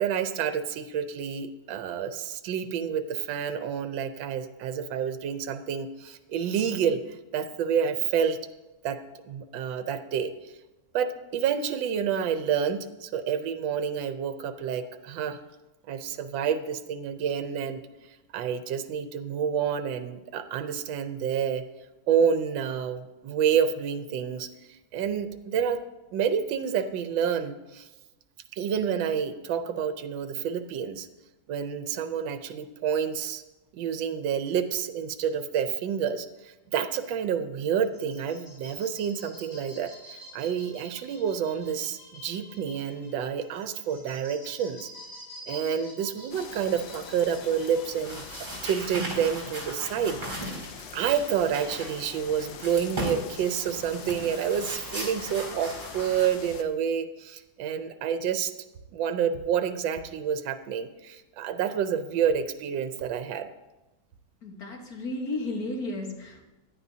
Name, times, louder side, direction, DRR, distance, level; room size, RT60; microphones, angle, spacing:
voice 1, 0.0-8.4 8.8-10.5 10.9-15.4 15.9-17.8 18.3-21.6 22.1-24.5 24.9-25.8 26.1-27.9 28.5-31.1 31.5-33.4 33.7-44.9 45.5-50.2 50.9-58.5 58.9-63.5, right 8 dB, 80° right, 10 dB, 1.4 m, -29 dB
sound 1, 37.8-49.0, equal, 10° left, 4.5 m, -48 dB
sound 2, 46.3-56.6, left 9 dB, 75° left, 1.4 m, -44 dB
sound 3, 48.0-56.3, right 1 dB, 25° right, 4.3 m, -38 dB
voice 2, 64.4-66.4, left 2 dB, 55° left, 2 dB, 1.8 m, -33 dB
16.5 x 10.5 x 2.8 m, 1.1 s
omnidirectional pair, 2.1 m